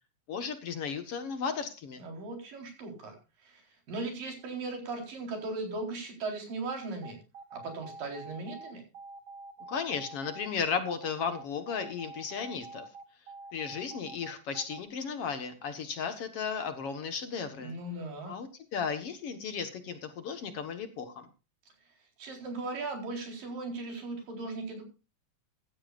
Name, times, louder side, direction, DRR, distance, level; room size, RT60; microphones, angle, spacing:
voice 1, 0.3-2.0 9.7-12.9 13.5-17.7 18.3-21.3, left 6 dB, 55° left, 9 dB, 2.0 m, -35 dB
voice 2, 2.0-3.2 3.4-7.2 7.5-8.8 17.6-18.4 22.2-24.8, right 3 dB, 85° right, 3 dB, 5.7 m, -38 dB
sound 1, 7.0-14.8, right 3 dB, 55° right, 1.2 m, -46 dB
15.5 x 13.0 x 2.5 m, 0.31 s
omnidirectional pair, 3.8 m